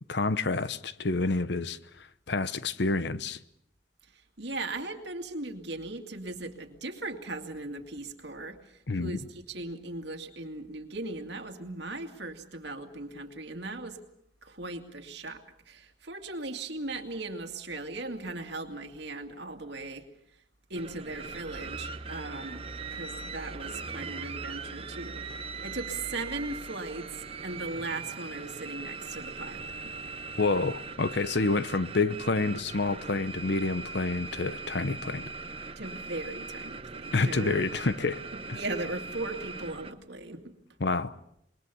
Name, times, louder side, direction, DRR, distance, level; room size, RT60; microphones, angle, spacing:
voice 1, 0.1-1.8 2.3-3.4 8.9-9.2 30.4-35.2 37.1-38.2 40.8-41.1, left 3 dB, 65° left, 0.8 m, -28 dB
voice 2, 4.1-14.0 14.4-20.1 20.7-22.6 22.9-30.0 35.8-37.7 38.3-40.5, right 2 dB, 65° right, 2.4 m, -38 dB
sound 1, 20.7-39.9, right 4 dB, 30° right, 0.9 m, -40 dB
sound 2, 27.5-31.4, equal, ahead, 7.0 m, -55 dB
26.5 x 21.5 x 7.0 m
head